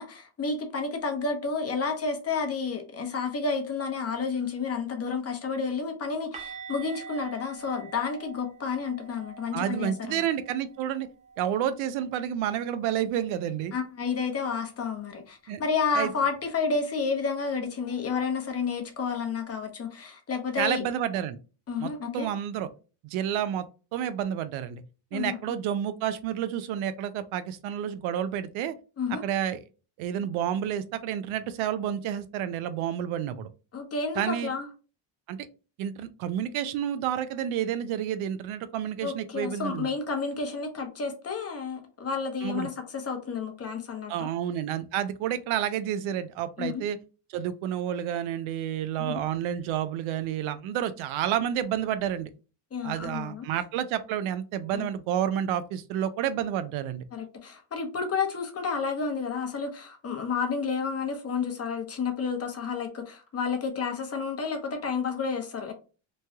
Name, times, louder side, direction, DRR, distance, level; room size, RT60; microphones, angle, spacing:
voice 1, 0.0-10.2 13.7-20.8 21.7-22.3 25.1-25.4 29.0-29.2 33.7-34.7 39.0-44.3 46.6-46.8 49.0-49.2 52.7-53.5 54.7-54.9 57.1-65.7, left 5 dB, 30° left, 0.7 m, -31 dB
sound 1, 6.3-12.1 12.4-12.6 12.9-13.1 16.3-16.4, right 6 dB, 15° right, 0.5 m, -46 dB
voice 2, 9.5-11.1 11.4-13.7 15.5-15.6 15.9-16.1 20.6-21.4 21.8-21.9 22.1-22.7 23.0-23.6 23.9-24.8 25.1-28.7 29.2-29.6 30.0-33.5 34.2-34.5 35.3-35.5 35.8-39.9 42.4-42.7 44.1-47.0 47.3-52.3 52.8-57.0, right 10 dB, 75° right, 0.6 m, -30 dB
3.1 x 2.2 x 2.7 m
cardioid pair, 125°, 48 cm